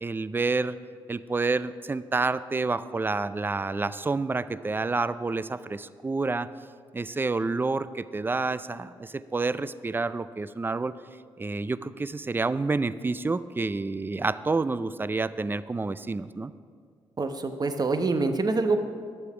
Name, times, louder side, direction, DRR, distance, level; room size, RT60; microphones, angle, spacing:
voice 1, 0.0-0.8 1.1-6.5 6.9-11.0 11.4-16.5, right 3 dB, 20° right, 15 dB, 0.4 m, -29 dB
voice 2, 17.2-18.8, right 3 dB, 35° right, 8 dB, 0.9 m, -25 dB
10.0 x 6.7 x 4.9 m, 2.1 s
supercardioid pair, 50°, 11 cm